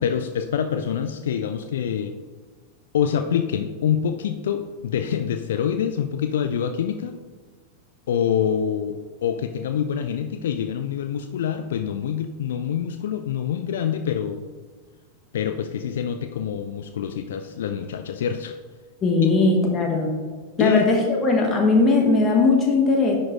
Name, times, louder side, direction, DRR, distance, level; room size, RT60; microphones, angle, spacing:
voice 1, 0.0-2.1 2.9-7.2 8.1-14.4 15.3-18.6 19.2-19.3 20.6-20.9, left 8 dB, 60° left, 8 dB, 0.3 m, -25 dB
voice 2, 19.0-20.2 20.6-23.2, left 3 dB, 25° left, 1 dB, 1.1 m, -19 dB
10.0 x 4.4 x 3.1 m, 1.5 s
figure-of-eight pair, 90°, 0 cm